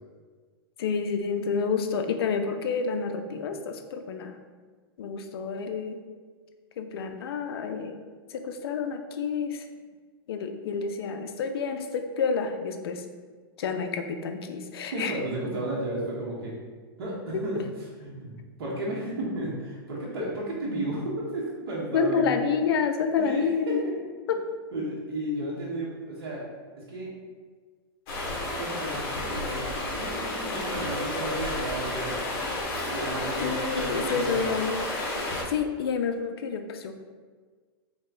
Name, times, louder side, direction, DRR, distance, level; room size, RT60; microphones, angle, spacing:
voice 1, 0.8-4.3 5.0-6.0 6.8-7.9 8.3-9.6 10.3-13.0 13.6-15.2 17.3-17.4 21.9-23.8 24.3-24.4 33.4-34.8 35.5-37.0, left 5 dB, 80° left, 6 dB, 0.5 m, -29 dB
voice 2, 14.8-16.5 17.0-17.6 18.0-22.3 23.2-23.9 24.7-26.5 26.9-27.1 28.5-29.7 29.9-32.2 32.9-34.5, right 1 dB, 75° right, -6 dB, 1.2 m, -33 dB
Stream, 28.1-35.4, left 2 dB, 50° left, 1.2 m, -31 dB
3.5 x 3.1 x 3.8 m, 1.5 s
hypercardioid pair, 125°, 13 cm